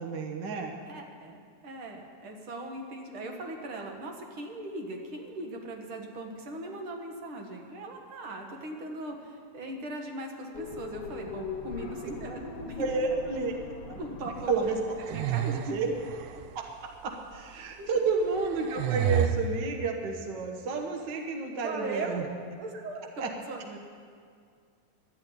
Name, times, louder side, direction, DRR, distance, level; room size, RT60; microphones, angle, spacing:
voice 1, 0.0-0.8 12.8-13.5 13.9-14.0 14.5-14.8 15.5-15.9 16.5-16.6 17.0-22.2 23.2-23.3, right 4 dB, 70° right, 2 dB, 1.0 m, -30 dB
voice 2, 0.9-13.3 14.0-14.5 15.1-15.7 17.6-18.0 21.6-22.2 22.6-23.8, right 2 dB, 50° right, 2 dB, 1.8 m, -39 dB
sound 1, 10.5-15.4, left 4 dB, 55° left, 2.1 m, -41 dB
sound 2, 14.7-16.6 17.3-17.4 18.2-19.3, right 10 dB, 85° right, 2.1 m, -30 dB
13.0 x 8.7 x 10.0 m, 2.1 s
omnidirectional pair, 3.7 m